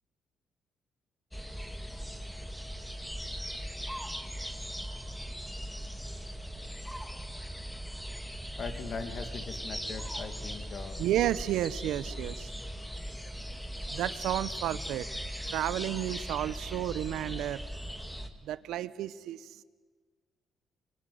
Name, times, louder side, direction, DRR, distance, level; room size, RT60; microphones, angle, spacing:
sound 1, 1.3-18.3, equal, 5° left, 2.4 m, -39 dB
voice 1, 8.6-11.0, left 5 dB, 55° left, 8 dB, 2.5 m, -40 dB
voice 2, 11.0-12.6 13.9-15.1 15.5-17.6 18.4-19.6, right 12 dB, 85° right, 16 dB, 0.9 m, -32 dB
24.5 x 24.0 x 9.5 m, 1.5 s
cardioid pair, 90°, 0 cm